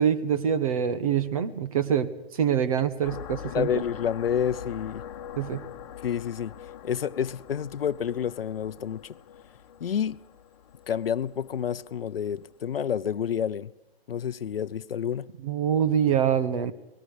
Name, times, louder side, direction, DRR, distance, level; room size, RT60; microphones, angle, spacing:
voice 1, 0.0-3.7 5.4-5.6 15.4-16.7, right 8 dB, 35° right, 1.3 m, -25 dB
sound 1, 3.0-12.6, left 9 dB, 30° left, 1.4 m, -44 dB
voice 2, 3.5-5.0 6.0-6.6 6.8-9.1 9.8-10.2 10.9-13.7 14.1-15.3, left 8 dB, 65° left, 0.8 m, -29 dB
30.0 x 19.5 x 5.0 m
hypercardioid pair, 165°, 31 cm